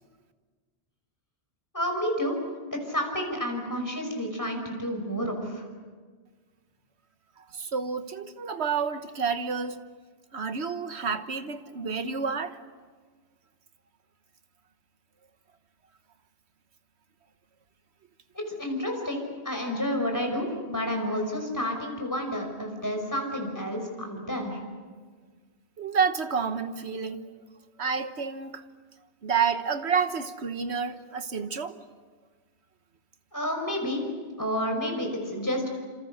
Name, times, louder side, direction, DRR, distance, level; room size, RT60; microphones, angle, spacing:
voice 1, 1.7-2.4 2.8-5.7 18.3-24.6 33.3-34.0 34.4-35.7, equal, 15° left, 2 dB, 5.6 m, -30 dB
voice 2, 7.5-9.8 10.3-12.6 25.8-27.2 27.8-28.6 29.2-31.8, right 6 dB, 75° right, 10 dB, 1.5 m, -29 dB
27.5 x 27.5 x 6.6 m, 1.5 s
omnidirectional pair, 1.1 m